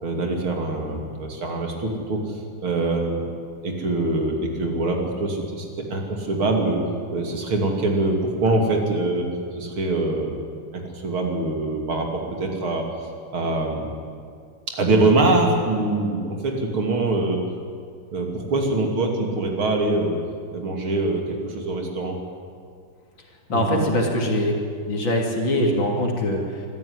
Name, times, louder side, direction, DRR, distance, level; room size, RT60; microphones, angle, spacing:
voice 1, 0.0-3.3 3.6-6.8 7.1-9.3 9.5-10.4 10.7-12.9 13.3-13.9 14.7-17.4 18.1-20.2 20.5-22.2 23.5-23.8, right 2 dB, 70° right, 2 dB, 3.6 m, -24 dB
voice 2, 23.5-24.5 24.9-26.7, left 1 dB, 60° left, 0 dB, 3.6 m, -22 dB
24.0 x 14.0 x 9.9 m, 2.2 s
omnidirectional pair, 2.4 m